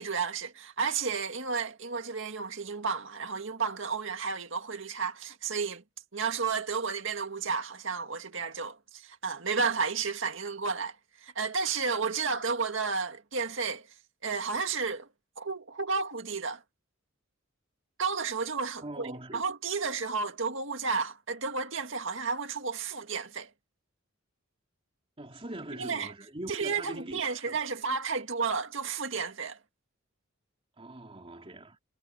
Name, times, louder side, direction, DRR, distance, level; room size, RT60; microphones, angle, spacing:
voice 1, 0.0-5.8 6.1-11.0 11.2-13.9 14.2-15.1 15.4-16.6 18.0-23.5 25.8-26.1 26.5-29.6, right 5 dB, 65° right, 2.1 m, -32 dB
voice 2, 18.8-19.4 25.2-27.7 30.8-31.8, right 1 dB, 30° right, 3.0 m, -42 dB
head